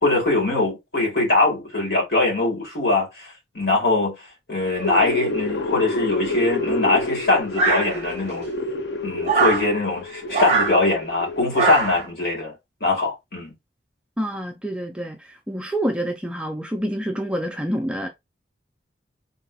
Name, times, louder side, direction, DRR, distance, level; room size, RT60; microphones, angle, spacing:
voice 1, 0.0-4.2 4.5-8.5 9.0-12.5 12.8-13.5, left 2 dB, 55° left, 1.8 m, -22 dB
sound 1, 4.6-11.8, left 2 dB, 70° left, 0.6 m, -29 dB
sound 2, 7.6-8.3 9.2-9.7 10.3-10.7 11.5-12.1, right 4 dB, 35° right, 0.8 m, -21 dB
voice 2, 14.2-18.1, equal, 5° right, 0.3 m, -27 dB
3.8 x 2.7 x 2.3 m
head